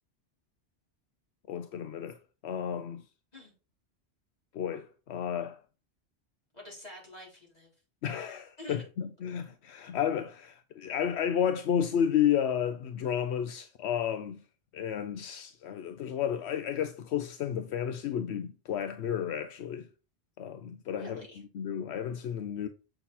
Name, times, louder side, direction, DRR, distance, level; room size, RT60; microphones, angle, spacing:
voice 1, 1.5-2.2 2.4-3.0 4.5-5.6 8.0-14.4 14.7-19.9 20.4-21.2 21.5-22.7, left 9 dB, 80° left, 0.9 m, -32 dB
voice 2, 6.5-7.7 8.6-8.8 20.8-21.4, left 1 dB, 40° left, 4.8 m, -47 dB
8.0 x 5.6 x 4.2 m
omnidirectional pair, 1.1 m